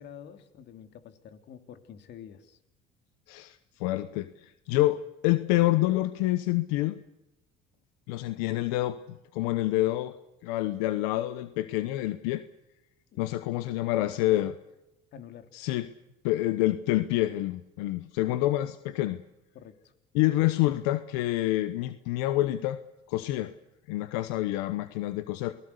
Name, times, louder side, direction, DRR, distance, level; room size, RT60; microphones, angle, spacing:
voice 1, 0.0-2.6 13.1-13.3 14.0-14.6 15.1-15.5 19.5-19.9, left 8 dB, 60° left, 9 dB, 2.8 m, -48 dB
voice 2, 3.3-7.0 8.1-10.1 10.4-12.4 13.2-14.5 15.5-15.9 16.2-19.2 20.1-22.8 23.1-23.5 23.9-25.5, left 16 dB, 90° left, 13 dB, 1.0 m, -27 dB
28.0 x 20.0 x 6.8 m, 0.93 s
supercardioid pair, 90°, 20 cm